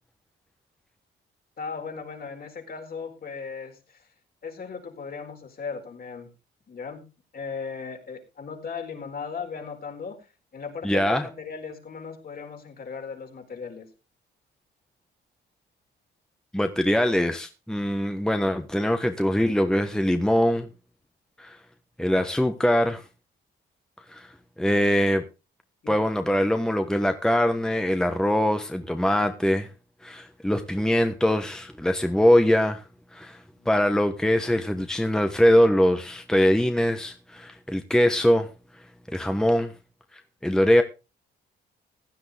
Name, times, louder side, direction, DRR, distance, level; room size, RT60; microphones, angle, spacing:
voice 1, 1.6-4.0 4.4-6.3 6.7-7.0 7.3-10.2 10.5-13.9 25.8-26.0 33.6-33.7, left 5 dB, 50° left, 4.4 m, -37 dB
voice 2, 10.8-11.3 16.5-20.7 21.4-21.6 22.0-23.0 24.1-24.3 24.6-25.2 25.9-29.7 30.0-32.8 33.1-38.5 39.1-39.7 40.4-40.8, equal, 5° left, 1.3 m, -22 dB
16.0 x 10.5 x 3.5 m
cardioid pair, 90°, 20 cm